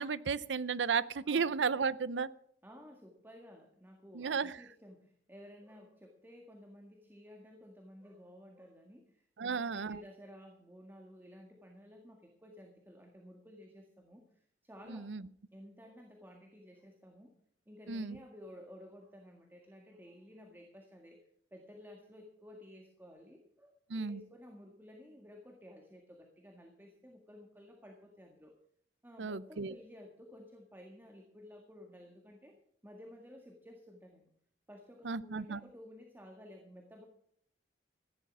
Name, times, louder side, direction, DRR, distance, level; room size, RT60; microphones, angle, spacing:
voice 1, 0.0-2.3 4.1-4.5 9.4-10.0 14.9-15.2 17.9-18.2 23.9-24.2 29.2-29.7 35.0-35.6, right 5 dB, 80° right, 18 dB, 0.6 m, -34 dB
voice 2, 2.6-15.1 15.5-17.3 17.7-21.2 21.5-23.7 24.0-28.5 29.0-32.6 32.8-34.3 34.7-37.1, equal, 10° right, 2 dB, 1.8 m, -54 dB
15.0 x 11.0 x 6.1 m, 0.66 s
head